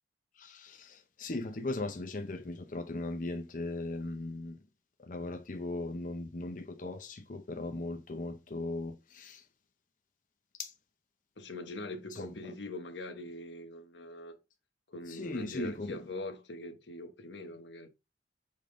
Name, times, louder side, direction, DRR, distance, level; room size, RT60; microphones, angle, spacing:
voice 1, 0.3-4.6 5.0-9.5 10.6-10.7 12.1-12.5 15.1-16.0, left 2 dB, 50° left, 0.7 m, -38 dB
voice 2, 11.4-14.4 14.9-17.9, left 2 dB, 90° left, 1.1 m, -42 dB
7.3 x 3.6 x 3.8 m
head